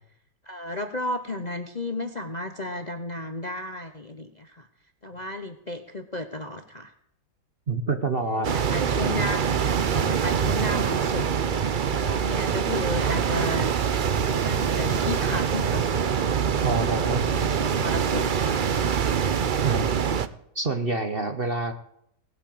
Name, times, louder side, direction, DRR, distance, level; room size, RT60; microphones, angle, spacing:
voice 1, 0.5-4.7 5.0-6.9 8.2-14.0 14.3-15.8 16.5-18.6 19.6-19.8, left 1 dB, 30° left, 8 dB, 0.9 m, -34 dB
voice 2, 7.7-8.5 16.6-17.2 19.6-19.8 20.5-21.7, right 3 dB, 40° right, 8 dB, 1.0 m, -27 dB
sound 1, 8.4-20.3, right 7 dB, 80° right, 0.4 m, -24 dB
18.5 x 8.9 x 7.7 m, 0.72 s
omnidirectional pair, 1.9 m